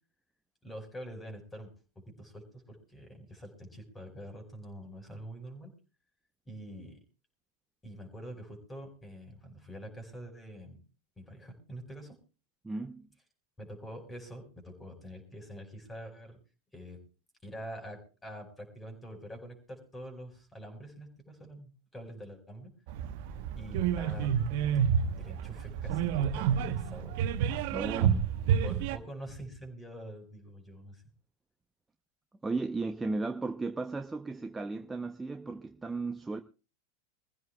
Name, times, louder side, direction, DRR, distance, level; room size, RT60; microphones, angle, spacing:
voice 1, 0.6-1.7 2.2-5.7 6.4-7.0 7.8-10.8 11.2-12.2 13.6-16.4 16.7-17.0 17.4-22.7 23.6-24.3 25.2-27.1 28.6-31.0, equal, 15° left, 4.9 m, -45 dB
voice 2, 12.6-13.1 27.7-28.3 32.4-36.4, right 3 dB, 10° right, 0.7 m, -35 dB
sound 1, 22.9-29.0, right 8 dB, 55° right, 1.0 m, -29 dB
24.5 x 15.5 x 2.3 m
hypercardioid pair, 90°, 0 cm